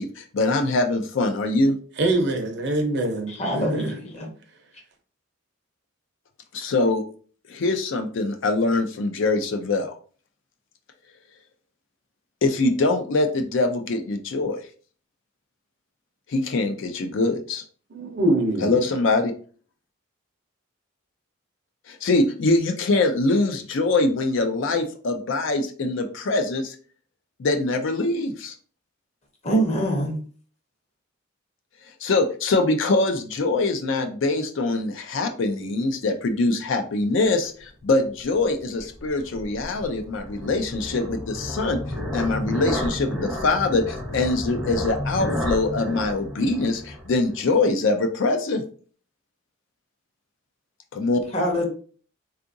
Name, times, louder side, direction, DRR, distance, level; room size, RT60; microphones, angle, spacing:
voice 1, 0.0-1.8 6.5-7.0 7.5-10.0 12.4-14.6 16.3-17.6 18.6-19.3 21.9-26.8 27.4-28.5 32.0-41.8 42.1-48.6 50.9-51.2, left 2 dB, 60° left, 0.4 m, -23 dB
voice 2, 2.0-3.9 17.9-18.8, right 1 dB, 55° right, 0.6 m, -24 dB
voice 3, 3.3-4.3 29.4-30.1 51.3-51.7, right 1 dB, 30° left, 0.8 m, -24 dB
sound 1, 38.0-47.6, left 1 dB, 5° right, 0.6 m, -32 dB
3.7 x 2.4 x 2.6 m
head